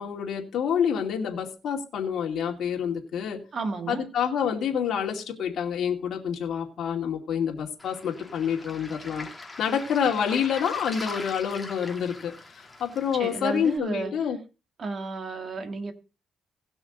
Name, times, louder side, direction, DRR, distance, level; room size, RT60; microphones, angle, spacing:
voice 1, 0.0-3.4 3.9-9.3 9.6-12.3 12.8-14.4, left 7 dB, 65° left, 1 dB, 2.5 m, -27 dB
voice 2, 3.5-4.0 13.1-14.1 14.8-15.9, right 3 dB, 45° right, 7 dB, 1.7 m, -32 dB
Waves surf, 7.8-13.8, left 2 dB, 15° left, 2.0 m, -42 dB
18.0 x 6.2 x 3.8 m, 0.32 s
cardioid pair, 105°, 0 cm